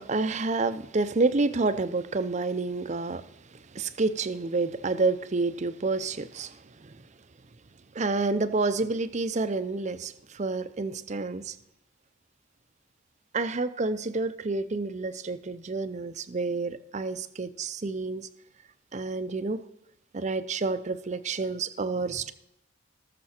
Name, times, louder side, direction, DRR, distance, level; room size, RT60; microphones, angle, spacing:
voice 1, 0.0-7.0 7.9-11.6 13.3-18.3 18.9-19.6 20.1-22.3, right 3 dB, 35° right, 12 dB, 0.5 m, -29 dB
18.5 x 6.8 x 4.3 m, 0.82 s
head